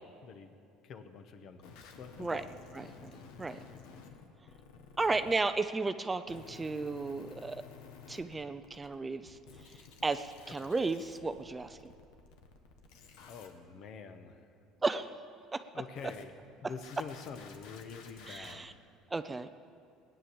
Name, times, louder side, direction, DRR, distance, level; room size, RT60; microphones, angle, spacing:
voice 1, 0.2-0.5 0.8-2.5 10.6-10.7 13.3-14.5 15.7-16.3 16.6-18.7, left 5 dB, 50° left, 8 dB, 1.2 m, -46 dB
sound 1, 1.6-5.3 6.3-9.0 9.3-13.5 16.0-16.2 16.8-18.5, left 5 dB, 80° left, 1.5 m, -53 dB
voice 2, 2.7-3.1 3.4-3.6 5.0-7.6 8.1-9.4 10.0-11.9 14.8-15.2 15.5-15.6 18.3-18.7 19.1-19.5, right 3 dB, 15° right, 11 dB, 0.5 m, -34 dB
18.0 x 9.8 x 7.1 m, 2.4 s
cardioid pair, 130°, 0 cm